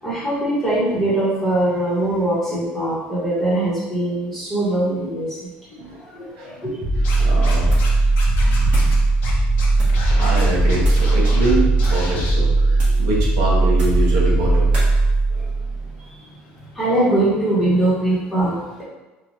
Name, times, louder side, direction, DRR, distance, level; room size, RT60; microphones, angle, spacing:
voice 1, 0.0-5.5 5.8-6.8 15.3-15.5 16.7-18.8, right 1 dB, 5° left, -9 dB, 1.0 m, -22 dB
sound 1, 6.8-15.9, right 2 dB, 20° right, 0.6 m, -18 dB
Scratching (performance technique), 7.0-7.9 8.2-8.9 9.2-9.3 9.6-11.5 11.8-12.3, left 3 dB, 50° left, 0.7 m, -33 dB
voice 2, 7.2-7.7 8.4-9.0 10.1-14.7, right 2 dB, 85° right, -3 dB, 1.1 m, -25 dB
sound 2, 7.7-8.0 8.3-9.0 9.7-10.1 10.8-11.1 11.7-12.1 12.7-13.1 13.7-14.1 14.7-14.9, right 1 dB, 35° right, 1.2 m, -34 dB
3.1 x 2.2 x 3.9 m, 1.1 s
cardioid pair, 175°, 4 cm